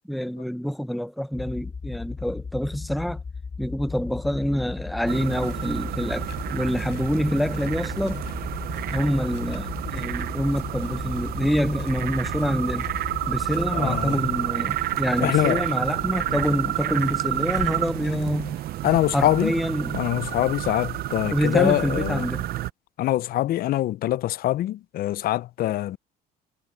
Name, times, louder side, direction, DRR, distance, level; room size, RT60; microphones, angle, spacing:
voice 1, 0.1-3.2 3.6-8.3 8.9-12.9 13.3-18.6 19.1-20.0 21.3-22.5, equal, ahead, 0.9 m, -26 dB
sound 1, 1.3-14.1, left 5 dB, 25° left, 1.1 m, -36 dB
sound 2, 5.1-22.7, right 15 dB, 65° right, 0.6 m, -30 dB
sound 3, 5.3-18.4, left 15 dB, 80° left, 4.8 m, -44 dB
voice 2, 13.7-14.3 15.2-15.6 16.3-16.4 18.8-19.5 19.9-22.3 23.0-26.0, left 14 dB, 60° left, 0.5 m, -24 dB
cardioid pair, 110°, 17 cm